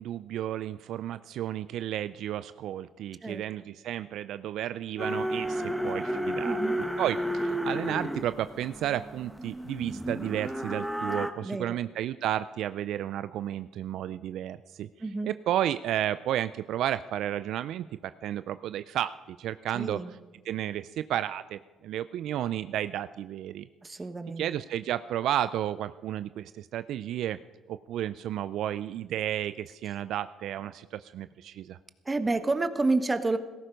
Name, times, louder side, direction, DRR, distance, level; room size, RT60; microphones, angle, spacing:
voice 1, 0.0-6.6 7.0-20.2 20.4-23.7 24.4-27.4 27.7-31.8, right 11 dB, 70° right, 14 dB, 0.4 m, -32 dB
sound 1, 5.0-11.3, equal, 5° right, 1.2 m, -32 dB
voice 2, 6.4-6.8 11.4-11.8 15.0-15.3 19.7-20.1 23.8-24.4 32.0-33.4, right 3 dB, 25° right, 10 dB, 1.3 m, -29 dB
17.0 x 14.0 x 5.2 m, 1.3 s
supercardioid pair, 65°, 0 cm